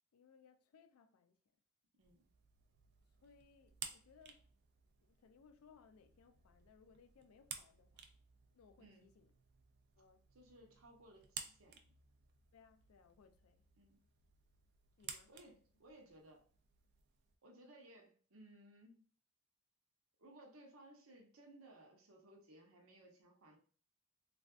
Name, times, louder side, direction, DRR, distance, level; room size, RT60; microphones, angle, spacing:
voice 1, 0.1-1.4 3.2-4.5 5.0-8.1 8.5-9.3 10.0-10.3 12.5-13.7 15.0-15.3, left 6 dB, 85° left, 0.4 m, -66 dB
sound 1, 2.0-17.3, right 7 dB, 50° right, 0.4 m, -56 dB
voice 2, 2.0-2.3 8.8-9.1 10.3-11.8 13.8-14.0 15.3-16.4 17.4-19.1 20.2-23.6, right 1 dB, 75° right, 0.8 m, -61 dB
3.3 x 2.4 x 2.3 m
head